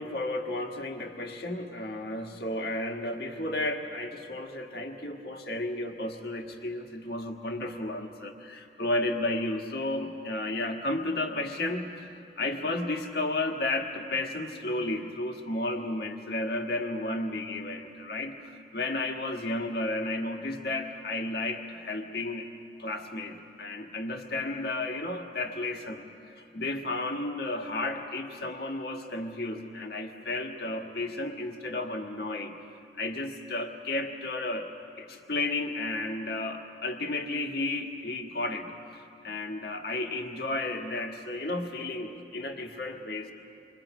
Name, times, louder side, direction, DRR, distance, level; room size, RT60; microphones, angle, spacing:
voice 1, 0.0-12.1 12.4-22.5 22.8-26.0 26.3-32.5 33.0-34.7 35.0-43.3, left 2 dB, 60° left, 3 dB, 1.6 m, -33 dB
27.0 x 23.0 x 5.0 m, 2.7 s
head